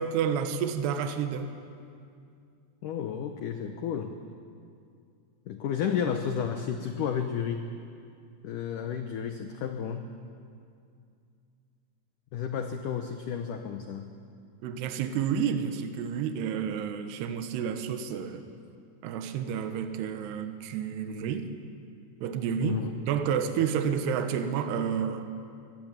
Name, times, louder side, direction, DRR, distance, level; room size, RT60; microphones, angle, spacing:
voice 1, 0.0-1.5 14.6-18.4 19.0-21.5 22.2-25.2, right 7 dB, 75° right, 8 dB, 3.1 m, -30 dB
voice 2, 2.8-4.1 5.5-7.7 8.4-10.1 12.3-14.1 22.6-23.0, left 8 dB, 75° left, 6 dB, 1.9 m, -32 dB
23.0 x 17.0 x 9.1 m, 2.4 s
omnidirectional pair, 5.0 m